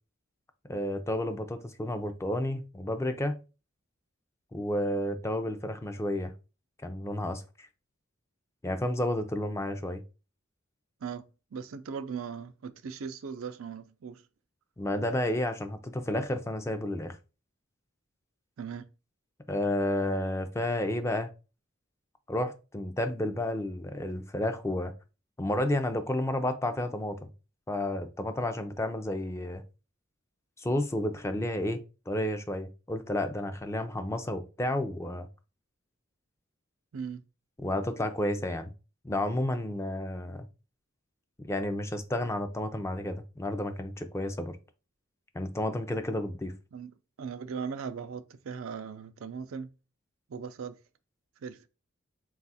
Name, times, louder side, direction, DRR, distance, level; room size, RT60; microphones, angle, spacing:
voice 1, 0.7-3.3 4.5-6.3 6.8-7.7 8.6-10.0 14.8-17.2 19.5-21.3 22.3-24.9 25.4-27.3 27.7-29.6 30.6-31.8 32.1-35.3 37.6-38.7 39.0-40.5 41.5-44.6 45.3-46.5, left 1 dB, 15° left, 0.4 m, -31 dB
voice 2, 11.0-14.2 18.6-18.9 36.9-37.2 46.7-46.9 47.2-49.7 50.3-50.7 51.4-51.7, right 6 dB, 90° right, 0.4 m, -38 dB
4.0 x 2.4 x 4.0 m
head